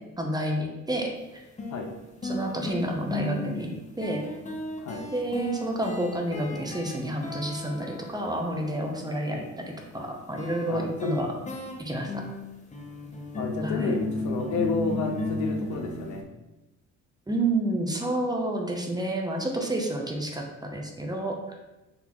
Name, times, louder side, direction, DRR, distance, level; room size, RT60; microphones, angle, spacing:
voice 1, 0.2-1.4 2.2-3.7 4.0-4.2 5.1-11.3 11.8-12.2 13.6-14.0 17.3-21.4, right 1 dB, 15° right, 1 dB, 0.7 m, -29 dB
sound 1, 1.1-1.2 1.6-8.8 10.4-16.2, left 2 dB, 25° left, 0.8 m, -35 dB
voice 2, 10.7-11.2 13.3-16.2, left 4 dB, 75° left, 3 dB, 0.7 m, -30 dB
4.0 x 3.5 x 3.0 m, 1.0 s
cardioid pair, 90°, 30 cm